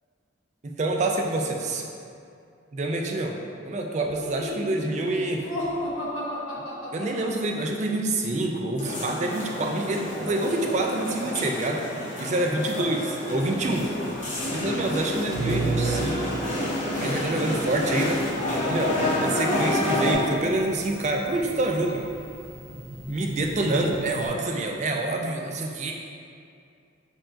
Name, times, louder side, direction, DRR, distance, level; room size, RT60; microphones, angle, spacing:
voice 1, 0.6-1.8 2.7-3.4 3.6-5.5 6.9-11.8 12.2-13.9 14.5-16.3 17.0-18.2 18.6-22.1 23.1-25.9, right 2 dB, 35° right, 1 dB, 0.3 m, -27 dB
Laughter, 4.0-7.7, left 1 dB, 85° left, 0.6 m, -34 dB
sound 1, 8.8-20.1, left 1 dB, 40° left, 1.0 m, -29 dB
sound 2, 13.6-24.3, right 3 dB, 85° right, 0.8 m, -36 dB
4.4 x 4.3 x 2.5 m, 2.5 s
head